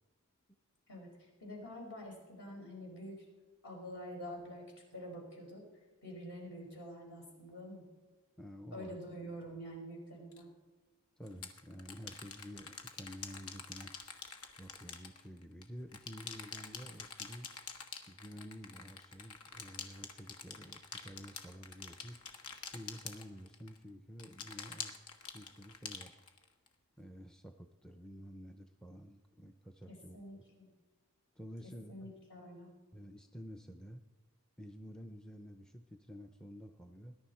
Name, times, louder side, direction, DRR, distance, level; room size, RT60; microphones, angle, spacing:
voice 1, 0.9-3.3 3.6-5.6 6.0-7.9 8.7-10.5 29.9-30.7 31.6-32.7, equal, 55° left, -1 dB, 5.3 m, -47 dB
voice 2, 8.4-9.0 11.2-13.9 14.6-17.5 18.1-22.2 22.7-24.9 25.3-26.2 27.0-30.2 31.4-32.1 32.9-34.0 34.6-37.2, equal, 5° left, 6 dB, 0.5 m, -50 dB
sound 1, 10.3-10.4 11.3-15.6 15.9-23.8 24.2-26.7, left 6 dB, 75° left, 1.5 m, -47 dB
20.5 x 11.0 x 4.3 m, 1.3 s
head